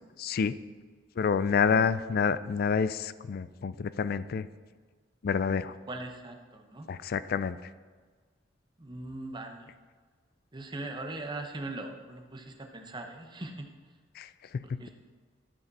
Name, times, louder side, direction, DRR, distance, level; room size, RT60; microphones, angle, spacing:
voice 1, 0.2-0.5 1.2-4.5 5.2-5.7 6.9-7.6 14.2-14.3 14.5-14.8, left 6 dB, 55° left, 15 dB, 0.3 m, -28 dB
voice 2, 5.7-6.9 8.8-9.7 10.5-13.7 14.8-14.9, right 2 dB, 25° right, 4 dB, 0.8 m, -40 dB
13.0 x 4.9 x 4.1 m, 1.5 s
head